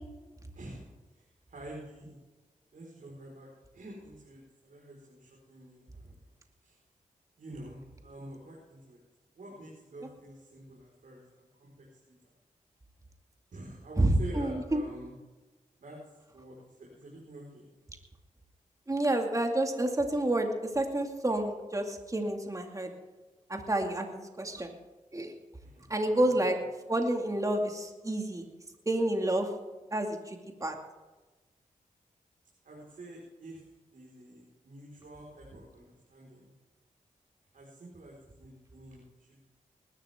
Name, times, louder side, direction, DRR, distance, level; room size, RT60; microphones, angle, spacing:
voice 1, 0.5-2.2 2.7-6.3 6.6-6.8 7.4-9.0 9.3-12.1 13.5-15.1 15.8-16.0 16.3-17.7 25.6-25.8 26.1-26.5 32.6-36.5 37.5-39.5, right 1 dB, 70° right, -4 dB, 5.0 m, -48 dB
voice 2, 14.0-14.8 18.9-22.9 23.5-24.7 25.1-25.3 25.9-26.6 26.9-28.4 28.9-29.5 29.9-30.8, right 1 dB, 25° right, 3 dB, 2.4 m, -29 dB
20.5 x 12.5 x 3.7 m, 1.2 s
cardioid pair, 60°, 14 cm